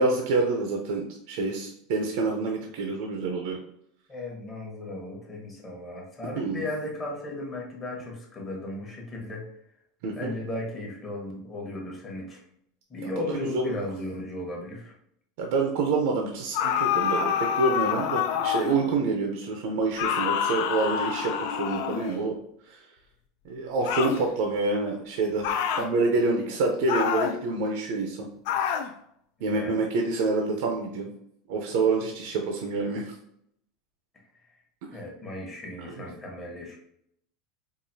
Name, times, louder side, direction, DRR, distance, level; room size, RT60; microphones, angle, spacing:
voice 1, 0.0-3.6 6.4-6.6 10.0-10.3 13.0-13.8 15.4-22.4 22.6-22.9 23.4-28.3 29.4-31.1 31.5-33.1 34.9-35.0, right 3 dB, 60° right, 2 dB, 0.6 m, -27 dB
voice 2, 4.1-9.4 10.2-12.4 12.9-14.9 29.4-29.7 34.4-34.6 34.9-36.8, left 1 dB, 20° left, -2 dB, 1.0 m, -36 dB
sound 1, 16.5-18.9 20.0-22.2 23.8-24.2 25.4-25.9 26.9-27.4 28.5-28.9, left 8 dB, 60° left, 0.3 m, -27 dB
4.7 x 2.5 x 2.7 m, 0.71 s
supercardioid pair, 170°, 0 cm